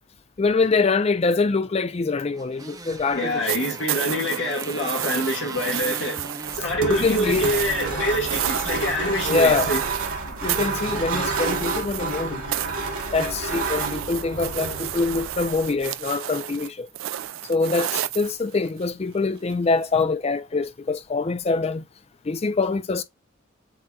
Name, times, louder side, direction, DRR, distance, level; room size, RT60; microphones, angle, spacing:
voice 1, 0.4-3.4 6.9-7.5 9.3-9.7 10.4-12.5 13.1-16.9 17.5-21.8 22.3-23.0, left 4 dB, 30° left, 0.3 m, -24 dB
Motorcycle, 2.3-8.8, right 3 dB, 15° right, 0.6 m, -40 dB
voice 2, 3.1-6.3 6.5-9.8, left 1 dB, 55° left, 1.5 m, -26 dB
sound 1, 3.5-10.2 10.5-12.2 12.5-18.9 20.0-20.1, right 13 dB, 70° right, 0.3 m, -31 dB
sound 2, 6.4-15.8, right 3 dB, 85° right, 1.4 m, -30 dB
7.7 x 2.9 x 2.3 m
head